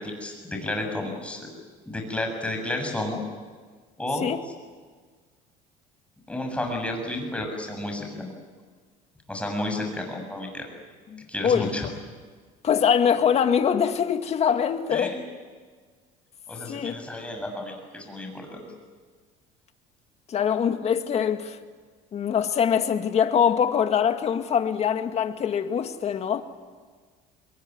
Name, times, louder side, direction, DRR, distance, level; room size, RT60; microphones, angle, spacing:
voice 1, 0.0-1.5 1.9-3.2 4.0-4.3 6.3-8.3 9.3-10.7 11.3-11.9 14.9-15.2 16.5-18.6, left 1 dB, 5° left, 7.4 m, -31 dB
voice 2, 11.1-12.0 12.6-15.2 16.7-16.9 20.3-21.6 22.1-26.4, left 8 dB, 40° left, 2.1 m, -23 dB
26.0 x 22.0 x 9.6 m
cardioid pair, 120°, 16 cm